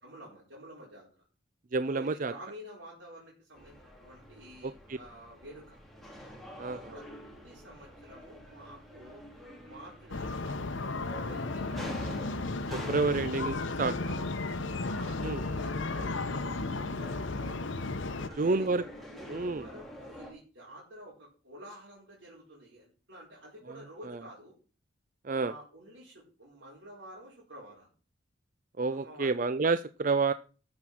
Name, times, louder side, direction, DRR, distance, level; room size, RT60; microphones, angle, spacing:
voice 1, 0.0-1.1 1.9-5.8 6.7-7.0 7.4-9.2 9.6-12.4 13.1-13.2 14.0-17.2 18.3-18.7 19.1-24.5 25.4-27.9 28.9-29.4, equal, 70° right, -5 dB, 4.6 m, -50 dB
voice 2, 1.7-2.3 4.6-5.0 6.6-7.0 12.7-13.9 15.2-15.4 18.4-18.8 19.3-19.7 24.0-24.2 25.2-25.5 28.8-30.3, right 3 dB, 40° right, 13 dB, 0.5 m, -29 dB
sound 1, 3.5-20.3, equal, ahead, 2.7 m, -47 dB
sound 2, 10.1-18.3, left 3 dB, 70° left, 0.9 m, -34 dB
13.0 x 6.7 x 6.1 m, 0.36 s
head